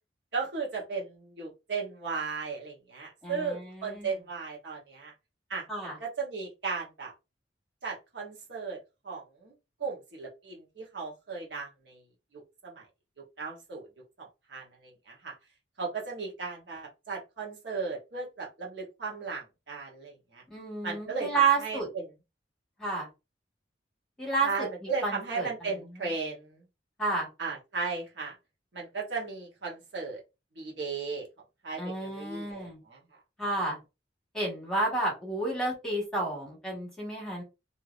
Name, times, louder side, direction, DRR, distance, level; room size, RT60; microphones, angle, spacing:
voice 1, 0.3-5.1 5.5-7.1 7.8-8.8 9.0-9.5 9.8-12.0 12.3-12.9 13.2-13.9 14.2-15.3 15.8-20.4 20.8-22.1 24.4-26.6 27.4-28.3 28.7-30.2 30.6-31.3 31.6-33.0, right 4 dB, 75° right, -2 dB, 1.1 m, -36 dB
voice 2, 3.2-4.1 5.7-6.0 20.5-21.9 22.8-23.1 24.2-24.7 25.0-25.5 27.0-27.3 31.8-32.8 33.4-33.8 34.3-37.4, right 3 dB, 5° left, -3 dB, 1.5 m, -30 dB
3.2 x 2.7 x 2.5 m, 0.26 s
head